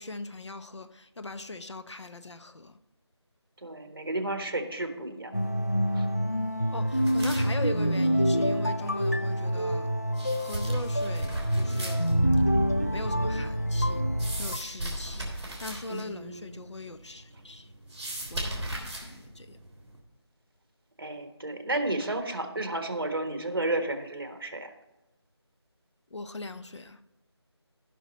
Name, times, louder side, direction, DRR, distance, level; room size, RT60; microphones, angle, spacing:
voice 1, 0.0-2.8 6.7-9.9 10.3-12.1 12.9-14.0 14.4-15.3 15.6-17.7 18.3-19.6 26.1-27.0, left 2 dB, 90° left, 0.9 m, -40 dB
voice 2, 3.6-5.3 5.9-6.1 15.9-16.7 21.0-24.7, right 2 dB, 55° right, 1.4 m, -32 dB
sound 1, 5.3-14.6, equal, 35° left, 0.3 m, -26 dB
sound 2, 6.9-20.0, right 1 dB, 5° right, 1.7 m, -40 dB
14.5 x 6.0 x 4.1 m
figure-of-eight pair, 180°, 14 cm